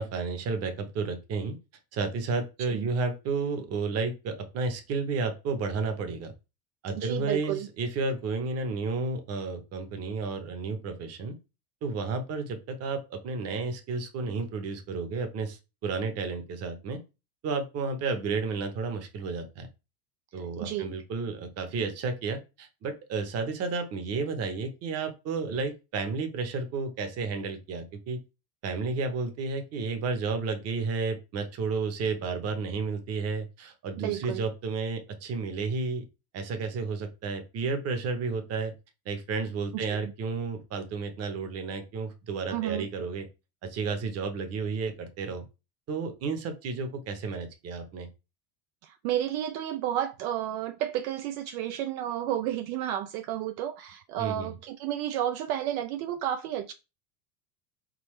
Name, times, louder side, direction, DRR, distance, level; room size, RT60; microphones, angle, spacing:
voice 1, 0.0-1.6 1.9-6.3 6.8-11.4 11.8-17.0 17.4-19.7 20.3-28.2 28.6-36.0 36.3-38.7 39.0-43.3 43.6-45.4 45.9-48.1 54.2-54.5, right 4 dB, 35° right, 0.9 m, -32 dB
voice 2, 7.0-7.7 20.3-20.9 34.0-34.4 39.7-40.1 42.5-42.9 48.8-56.7, right 11 dB, 65° right, 0.5 m, -32 dB
4.0 x 3.8 x 3.1 m
supercardioid pair, 145°, 46 cm